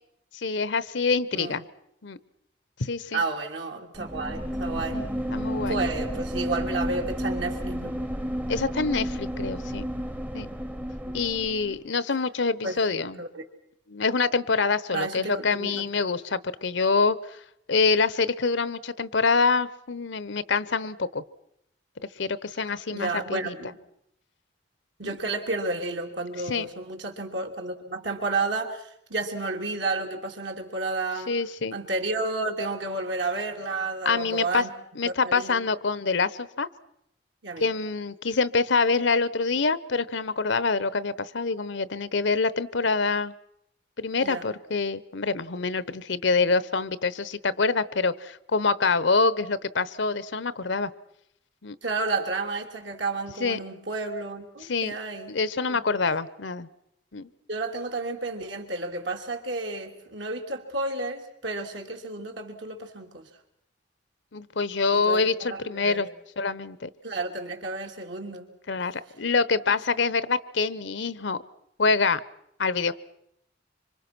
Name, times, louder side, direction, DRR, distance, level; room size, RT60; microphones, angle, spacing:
voice 1, 0.3-1.6 2.0-2.2 2.8-3.2 4.9-5.8 8.5-9.8 10.3-10.5 11.1-13.2 13.9-17.2 17.7-21.2 22.2-23.5 25.0-25.2 26.5-26.7 31.3-31.8 34.0-34.6 35.0-36.7 37.6-43.3 44.0-50.9 51.6-51.8 53.4-53.6 54.7-54.9 55.3-56.7 57.1-57.3 64.3-66.1 66.4-66.9 68.7-71.4 71.8-72.2 72.6-72.9, left 4 dB, 70° left, 17 dB, 0.9 m, -26 dB
voice 2, 3.1-5.0 5.7-8.0 11.0-11.1 12.6-12.8 13.2-13.4 14.9-15.9 22.9-23.8 25.0-31.4 31.7-34.7 35.0-35.7 37.4-37.7 44.2-44.5 51.8-55.4 55.7-55.8 57.5-63.3 64.9-66.1 67.0-68.5 68.8-68.9, right 3 dB, 70° right, 3 dB, 3.1 m, -31 dB
sound 1, 3.9-11.8, equal, 10° right, 0.9 m, -31 dB
26.0 x 25.0 x 6.1 m, 0.76 s
head